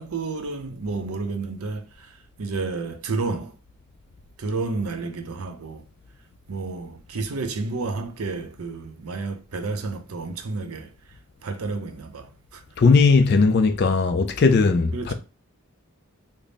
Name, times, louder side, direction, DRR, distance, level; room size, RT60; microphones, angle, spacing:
voice 1, 0.0-3.6 4.4-5.9 6.5-10.9 11.4-12.6 14.9-15.1, right 3 dB, 80° right, 0.6 m, -31 dB
voice 2, 12.8-15.1, left 4 dB, 50° left, 0.3 m, -18 dB
3.4 x 2.0 x 3.9 m
head